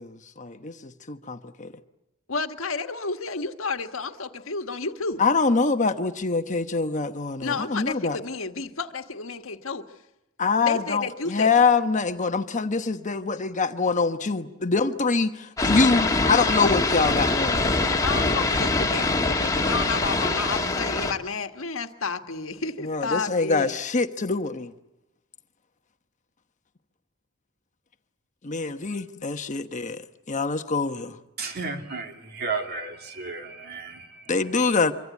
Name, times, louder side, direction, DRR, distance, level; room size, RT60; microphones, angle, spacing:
voice 1, 0.0-1.7 5.2-8.2 10.4-17.7 22.8-24.7 28.4-30.0 30.3-31.2 34.3-34.9, left 4 dB, 35° left, 1.1 m, -24 dB
voice 2, 2.3-5.2 7.4-9.8 10.6-11.6 17.8-23.7, left 4 dB, 70° left, 1.6 m, -31 dB
sound 1, 15.6-21.1, left 2 dB, 15° left, 1.7 m, -24 dB
voice 3, 31.4-34.3, right 4 dB, 50° right, 2.7 m, -33 dB
25.5 x 25.0 x 8.3 m
head